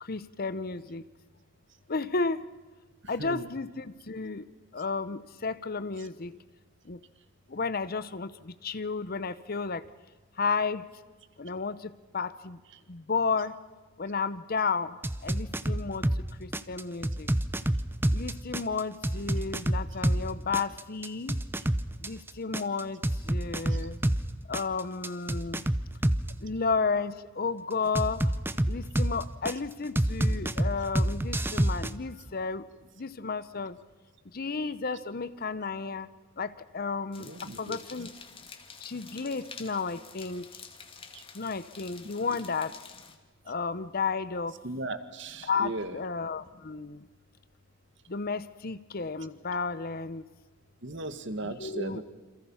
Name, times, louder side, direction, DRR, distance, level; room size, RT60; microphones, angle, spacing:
voice 1, 0.0-1.0 1.9-2.5 3.1-4.5 4.7-6.4 6.9-7.0 7.5-9.8 10.4-10.9 11.4-12.6 12.9-13.6 14.0-15.0 15.2-16.1 16.4-17.3 18.1-21.4 22.0-23.0 23.3-24.0 24.5-25.7 26.4-28.2 28.7-32.7 33.0-33.8 34.3-36.1 36.4-37.3 37.6-38.1 38.8-40.4 41.3-42.8 43.5-44.5 45.4-47.0 48.1-50.2 51.4-52.0, left 4 dB, 45° left, 14 dB, 0.8 m, -32 dB
voice 2, 3.2-3.5 23.7-23.9 37.2-37.8 41.1-41.2 42.3-42.4 44.6-46.0 50.8-52.0, right 2 dB, 60° right, 10 dB, 1.9 m, -37 dB
sound 1, 15.0-16.2 16.5-20.2 20.5-24.2 24.5-26.3 28.0-29.5 30.0-31.9, right 1 dB, 10° right, 0.7 m, -27 dB
sound 2, 37.1-43.2, left 5 dB, 25° left, 2.3 m, -48 dB
28.5 x 27.5 x 5.7 m, 1.3 s
head